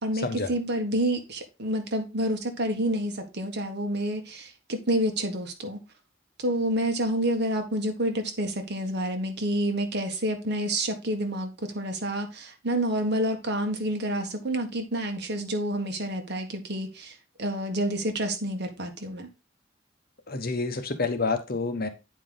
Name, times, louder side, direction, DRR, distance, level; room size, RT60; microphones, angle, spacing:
voice 1, 0.0-5.8 6.4-19.3, right 1 dB, 60° right, 1.6 m, -28 dB
voice 2, 20.3-21.9, left 3 dB, 50° left, 1.1 m, -28 dB
8.9 x 4.8 x 4.0 m
head